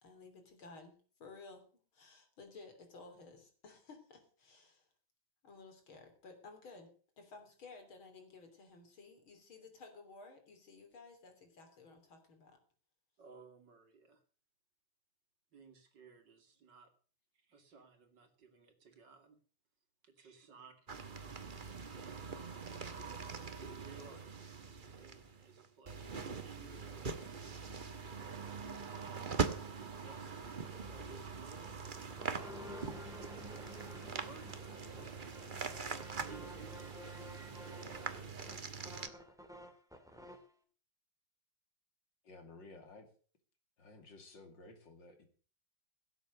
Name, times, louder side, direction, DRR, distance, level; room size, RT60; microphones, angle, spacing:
voice 1, 0.0-1.6 1.9-4.9 5.4-6.9 7.2-12.6, left 3 dB, 80° left, 4 dB, 4.0 m, -55 dB
voice 2, 13.2-14.2 15.5-16.9 17.3-19.4 20.0-20.7 21.2-21.3 21.9-23.2 23.7-27.5 28.2-30.3 30.9-31.8 32.3-33.5 34.1-35.4 36.2-38.4, right 5 dB, 60° right, 7 dB, 2.8 m, -59 dB
sound 1, 20.9-39.1, right 5 dB, 30° right, 1.1 m, -43 dB
sound 2, 31.6-40.5, left 1 dB, ahead, 2.1 m, -52 dB
voice 3, 42.2-43.1 43.8-45.3, left 3 dB, 65° left, 6 dB, 3.2 m, -55 dB
17.0 x 8.1 x 6.6 m, 0.41 s
omnidirectional pair, 2.2 m